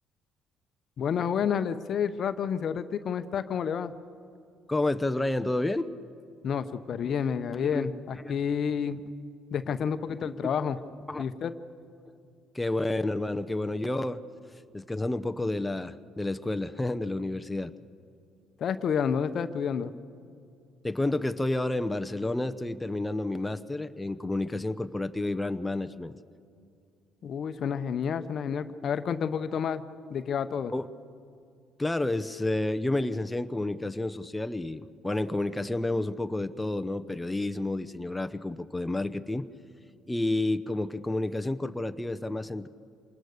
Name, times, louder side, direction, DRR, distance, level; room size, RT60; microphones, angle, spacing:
voice 1, 1.0-3.9 6.4-9.0 9.5-10.8 11.2-11.6 18.6-19.9 27.2-29.8 30.1-30.7, left 7 dB, 55° left, 11 dB, 0.9 m, -29 dB
voice 2, 4.7-5.9 7.5-8.3 11.1-11.2 12.5-14.2 14.7-17.7 20.8-26.1 30.7-30.8 31.8-39.4 40.1-42.7, left 2 dB, 10° left, 10 dB, 0.8 m, -30 dB
26.5 x 20.0 x 6.6 m, 2.4 s
supercardioid pair, 65°, 0 cm